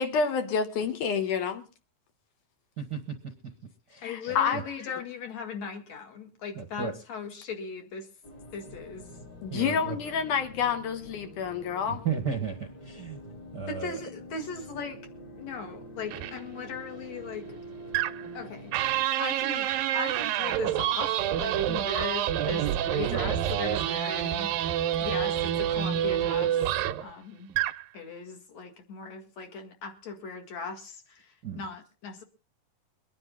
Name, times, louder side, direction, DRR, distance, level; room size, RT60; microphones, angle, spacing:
voice 1, 0.0-1.7 4.0-4.6 9.4-12.0, left 6 dB, 70° left, 2.5 m, -28 dB
voice 2, 2.8-3.3 3.9-4.6 6.5-6.9 9.5-10.0 11.9-14.0 31.4-31.6, right 6 dB, 50° right, 1.2 m, -35 dB
voice 3, 4.0-8.1 8.5-9.1 13.7-15.0 15.4-17.6 18.3-18.7 19.2-24.7 25.0-26.6 27.0-27.5 27.9-32.2, left 4 dB, 55° left, 2.8 m, -38 dB
sound 1, 8.2-19.0, equal, 35° left, 2.0 m, -46 dB
sound 2, 16.1-16.3 17.9-18.3 18.7-27.1 27.5-27.8, right 11 dB, 90° right, 2.6 m, -28 dB
23.5 x 9.9 x 3.8 m
omnidirectional pair, 3.9 m